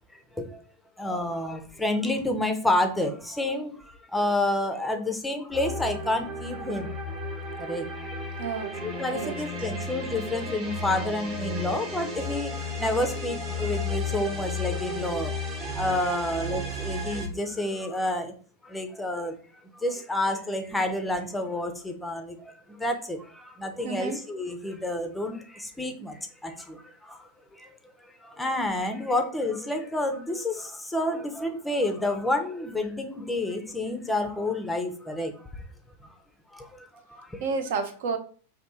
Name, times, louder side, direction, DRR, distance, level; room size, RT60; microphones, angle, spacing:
voice 1, 0.1-0.6 1.0-6.9 7.6-8.2 8.8-15.3 15.7-18.3 18.6-19.3 19.7-27.7 28.2-35.6 36.0-36.2 36.5-37.4, left 1 dB, 5° left, 0.6 m, -29 dB
sound 1, 5.5-17.3, left 2 dB, 35° right, 1.1 m, -33 dB
voice 2, 8.4-8.7 9.1-9.4 23.8-24.2 37.4-38.2, right 5 dB, 55° right, 0.6 m, -30 dB
3.4 x 2.6 x 4.1 m
figure-of-eight pair, 90°, 0 cm